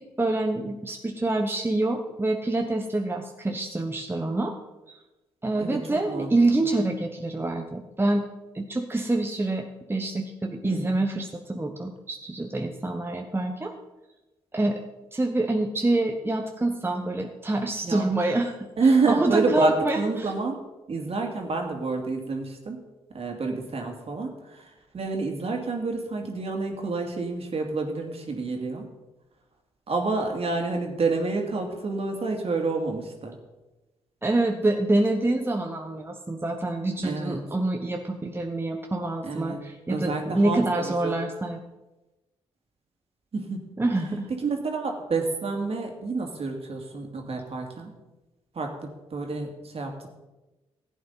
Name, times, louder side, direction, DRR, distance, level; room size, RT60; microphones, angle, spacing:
voice 1, 0.0-4.5 4.9-5.0 5.4-8.2 8.5-13.7 14.5-14.8 15.1-18.6 19.1-20.3 34.2-41.6 43.8-44.3, right 2 dB, 15° right, 3 dB, 1.1 m, -26 dB
voice 2, 10.6-11.0 17.8-18.0 18.8-20.6 20.9-22.8 23.1-28.9 29.9-33.3 37.0-37.4 39.2-39.6 39.9-41.1 43.3-43.6 44.3-47.9 48.5-50.1, right 3 dB, 45° right, 2 dB, 2.4 m, -28 dB
15.0 x 8.6 x 4.0 m, 1.1 s
hypercardioid pair, 40°, 14 cm